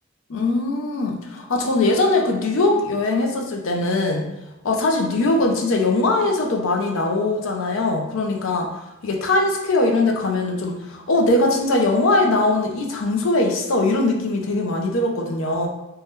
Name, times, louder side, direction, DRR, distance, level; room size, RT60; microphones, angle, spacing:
voice 1, 0.3-4.3 4.6-8.7 9.0-15.7, left 2 dB, 65° left, 2 dB, 0.5 m, -21 dB
2.7 x 2.2 x 3.4 m, 1.0 s
head